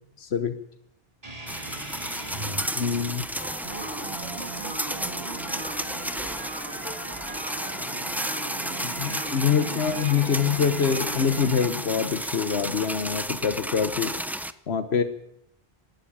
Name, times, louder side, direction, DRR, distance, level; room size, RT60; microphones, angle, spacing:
voice 1, 0.2-0.5 2.8-3.3 9.0-14.2 14.7-15.0, left 7 dB, 90° left, 9 dB, 1.3 m, -25 dB
sound 1, 1.2-6.3, right 1 dB, 35° right, 3.2 m, -42 dB
sound 2, 1.5-14.5, equal, ahead, 0.7 m, -33 dB
voice 2, 2.0-2.6 3.4-5.3 5.8-7.8 8.2-11.4, left 1 dB, 35° left, 2 dB, 6.2 m, -47 dB
sound 3, 3.6-11.7, right 4 dB, 75° right, 2.3 m, -38 dB
25.5 x 12.5 x 8.7 m, 0.79 s
omnidirectional pair, 1.0 m